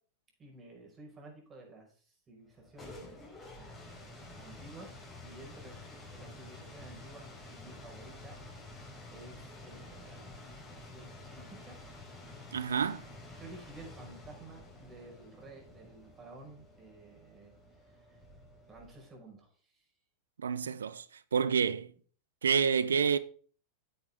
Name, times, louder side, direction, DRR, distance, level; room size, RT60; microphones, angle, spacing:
voice 1, 0.4-3.1 3.5-8.7 9.1-11.8 13.3-17.6 17.8-18.2 18.7-19.9, right 2 dB, 25° right, 5.1 m, -53 dB
sound 1, 2.5-19.2, left 2 dB, 15° left, 4.0 m, -50 dB
voice 2, 12.5-13.0 20.4-21.1 21.3-21.9 22.4-23.2, right 6 dB, 90° right, 0.7 m, -28 dB
10.0 x 8.2 x 3.6 m
hypercardioid pair, 110°, 0 cm